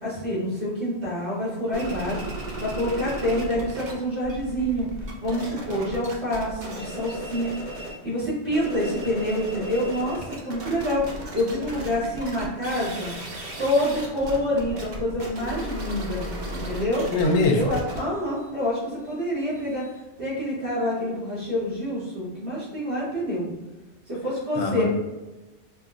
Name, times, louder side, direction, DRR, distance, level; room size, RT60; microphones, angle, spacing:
voice 1, 0.0-2.2 2.6-7.5 8.0-13.1 13.6-17.1 17.5-19.8 20.2-23.5 24.1-24.9, equal, 70° right, -8 dB, 2.0 m, -27 dB
sound 1, 1.7-3.9 4.2-8.0 8.4-20.0, right 1 dB, 50° right, 0.7 m, -36 dB
voice 2, 17.1-17.8 24.6-24.9, left 2 dB, 75° left, 3 dB, 0.9 m, -22 dB
5.4 x 2.1 x 2.4 m, 1.1 s
omnidirectional pair, 1.2 m